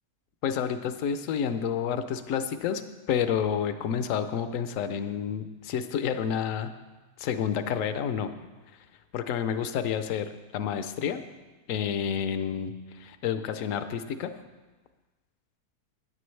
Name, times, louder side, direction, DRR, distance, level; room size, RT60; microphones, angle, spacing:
voice 1, 0.4-2.8 3.1-6.7 7.2-8.3 9.1-11.2 11.7-14.3, left 8 dB, 65° left, 10 dB, 0.9 m, -29 dB
13.0 x 9.5 x 3.2 m, 1.2 s
omnidirectional pair, 1.7 m